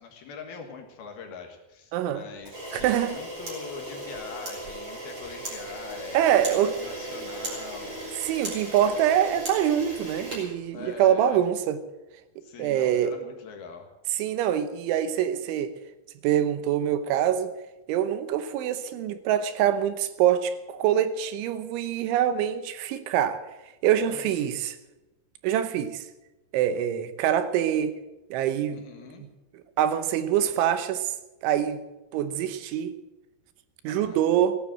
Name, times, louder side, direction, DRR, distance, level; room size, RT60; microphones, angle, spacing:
voice 1, 0.0-8.0 10.7-11.4 12.4-13.9 24.1-24.5 28.7-29.2 33.9-34.2, left 5 dB, 60° left, 4 dB, 3.1 m, -42 dB
voice 2, 1.9-2.2 2.7-3.2 6.1-6.7 8.2-11.8 12.6-13.1 14.2-15.7 16.2-17.5 17.9-23.4 23.8-24.8 25.4-26.1 26.5-27.9 28.3-28.8 29.8-31.1 31.4-31.8 32.1-32.9 33.8-34.6, right 10 dB, 80° right, 11 dB, 3.3 m, -24 dB
Camera, 2.4-11.2, right 1 dB, 25° right, 5.3 m, -37 dB
17.0 x 11.0 x 7.6 m, 1.0 s
omnidirectional pair, 5.5 m